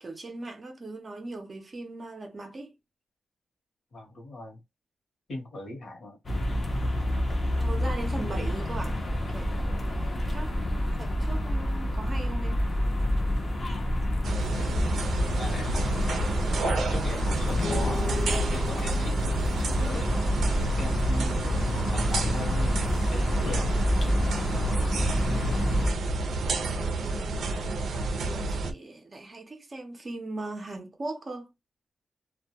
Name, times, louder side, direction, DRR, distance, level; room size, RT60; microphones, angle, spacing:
voice 1, 0.0-2.7 7.5-9.0 9.3-12.7 19.9-20.0 24.5-25.0 25.8-27.6 27.9-31.5, right 2 dB, 30° right, 0.6 m, -40 dB
voice 2, 3.9-4.6 5.3-6.2 15.3-16.1 16.6-18.2 18.5-20.2 20.7-22.7 23.1-23.7, left 2 dB, 55° left, 1.0 m, -38 dB
sound 1, 6.3-25.9, left 1 dB, 30° left, 0.6 m, -28 dB
sound 2, 14.2-28.7, right 3 dB, 75° right, 0.5 m, -30 dB
sound 3, 17.6-21.2, left 4 dB, 85° left, 0.4 m, -38 dB
2.2 x 2.2 x 2.7 m
wide cardioid pair, 170°, 0 cm